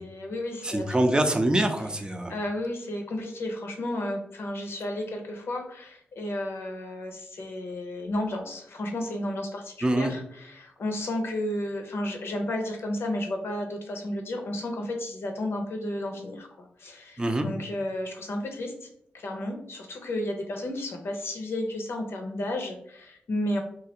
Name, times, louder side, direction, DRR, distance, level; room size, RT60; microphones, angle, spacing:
voice 1, 0.0-1.0 2.3-18.9 19.1-23.6, left 1 dB, 70° left, 3 dB, 0.7 m, -32 dB
voice 2, 0.6-2.4 9.8-10.1 17.2-17.5, right 1 dB, 20° right, 5 dB, 0.5 m, -24 dB
3.1 x 2.4 x 2.9 m, 0.70 s
cardioid pair, 50°, 4 cm